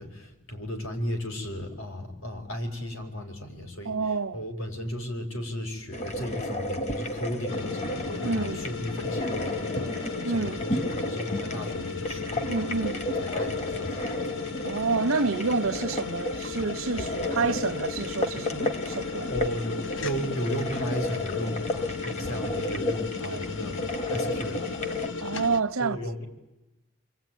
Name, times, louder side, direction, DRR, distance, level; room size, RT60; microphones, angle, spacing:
voice 1, 0.0-12.8 13.1-14.5 19.3-24.8 25.8-26.2, equal, 80° left, 5.0 m, -35 dB
voice 2, 3.8-4.4 8.2-8.7 10.2-10.6 12.5-13.0 14.6-19.3 23.2-23.6 25.2-26.0, right 4 dB, 85° right, 0.9 m, -29 dB
sound 1, 5.9-25.1, left 1 dB, 30° left, 1.4 m, -33 dB
sound 2, 7.5-25.6, left 5 dB, 65° left, 1.0 m, -36 dB
28.5 x 22.5 x 9.2 m
head